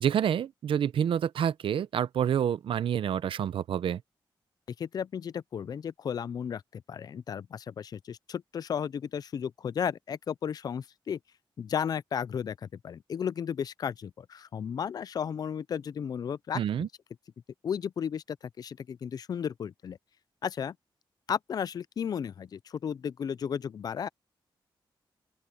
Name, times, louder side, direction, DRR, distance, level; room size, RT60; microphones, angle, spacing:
voice 1, 0.0-4.0 16.5-16.9, right 9 dB, 85° right, 0.7 m, -28 dB
voice 2, 4.8-11.2 11.6-16.6 17.6-20.0 20.4-20.8 21.3-24.1, left 8 dB, 50° left, 0.4 m, -34 dB
open air
wide cardioid pair, 160°, 9 cm